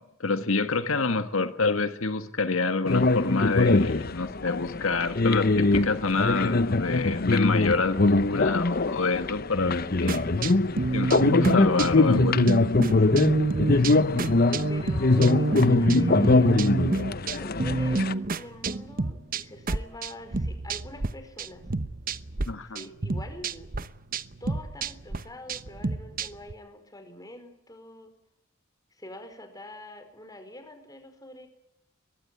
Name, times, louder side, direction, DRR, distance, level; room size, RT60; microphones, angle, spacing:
voice 1, 0.0-10.2 10.9-12.3 22.5-22.8, left 3 dB, 85° left, 10 dB, 1.6 m, -27 dB
sound 1, 2.8-18.1, left 2 dB, 45° left, 0.8 m, -23 dB
sound 2, 10.1-21.1 21.4-22.5 22.7-26.5, right 2 dB, 45° right, 0.9 m, -29 dB
voice 2, 12.0-12.6 14.4-16.6 17.4-21.7 22.6-23.7 24.4-28.1 28.9-31.5, left 1 dB, 20° left, 7 dB, 4.7 m, -44 dB
23.0 x 21.0 x 9.4 m, 0.86 s
head